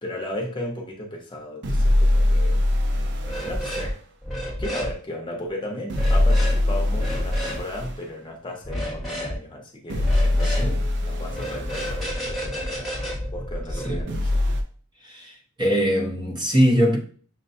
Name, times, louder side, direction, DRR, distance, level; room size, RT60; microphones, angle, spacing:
voice 1, 0.0-2.6 3.4-4.0 4.6-13.0 13.3-14.2, left 1 dB, 25° left, 0.7 m, -35 dB
sound 1, 1.6-3.9 5.9-8.0 9.9-12.1 14.1-14.6, left 1 dB, 55° right, 0.5 m, -22 dB
sound 2, 3.2-3.9 4.2-4.9 5.9-6.6 6.9-7.6 8.6-9.3 10.0-10.7 11.3-14.0, equal, ahead, 1.1 m, -30 dB
voice 2, 10.4-10.9 13.7-14.1 15.0-17.0, equal, 20° right, 0.8 m, -22 dB
6.4 x 2.2 x 2.6 m
head